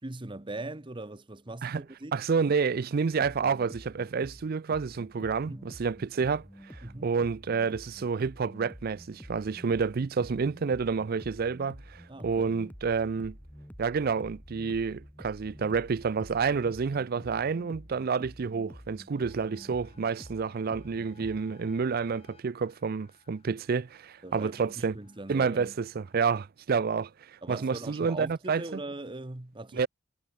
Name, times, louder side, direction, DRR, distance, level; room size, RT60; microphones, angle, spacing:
voice 1, 0.0-2.2 5.5-5.6 6.8-7.1 12.1-12.6 24.2-25.8 27.4-29.9, right 2 dB, 25° right, 1.0 m, -41 dB
voice 2, 2.1-6.5 6.7-13.4 13.8-25.0 25.3-28.6 29.7-29.9, right 5 dB, 50° right, 0.4 m, -29 dB
sound 1, 3.0-21.4, equal, 10° left, 3.2 m, -49 dB
sound 2, 19.1-26.4, left 3 dB, 30° left, 7.7 m, -61 dB
head